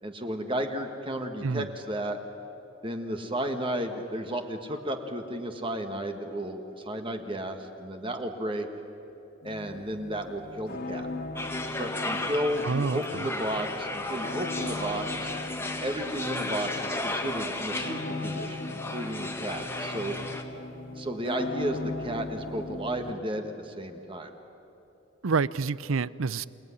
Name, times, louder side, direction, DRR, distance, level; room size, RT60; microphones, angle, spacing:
voice 1, 0.0-2.2 2.8-8.7 9.4-11.1 11.8-15.3 15.8-20.2 20.9-24.3, right 1 dB, 25° right, 5 dB, 1.6 m, -33 dB
sound 1, 9.4-23.1, left 2 dB, 50° left, 2.4 m, -38 dB
sound 2, 11.4-20.4, left 2 dB, 10° left, 1.6 m, -35 dB
voice 2, 12.6-13.3 25.2-26.5, right 4 dB, 80° right, 19 dB, 0.6 m, -28 dB
28.0 x 19.0 x 9.8 m, 3.0 s
head